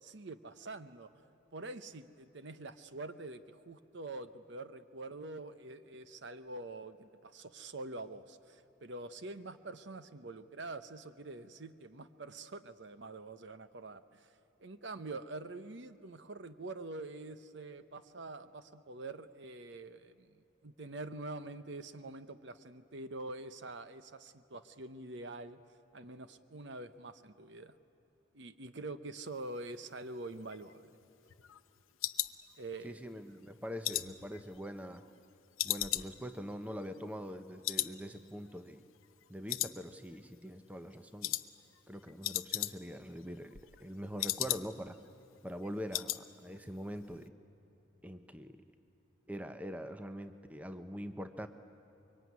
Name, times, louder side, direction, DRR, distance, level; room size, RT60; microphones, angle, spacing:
voice 1, 0.0-1.1 1.5-14.3 14.6-20.3 20.6-25.6 25.9-27.8 28.3-30.8 32.6-33.0, right 2 dB, 60° right, 12 dB, 0.9 m, -45 dB
sound 1, 30.3-33.1 33.4-35.2 35.6-37.4 37.6-38.0 38.3-38.4 38.8-39.2 39.5-40.3 40.6-40.8 41.2-41.5 41.8-41.9 42.1-43.1 43.4-45.0 45.3-45.4 45.6-46.2 46.5-46.8 47.1-47.2, left 15 dB, 90° left, 0.7 m, -37 dB
voice 2, 32.8-35.0 35.6-38.8 39.3-41.3 41.9-45.0 45.4-47.3 48.0-48.6 49.3-51.5, equal, 5° right, 9 dB, 0.8 m, -43 dB
24.0 x 23.0 x 9.5 m, 3.0 s
head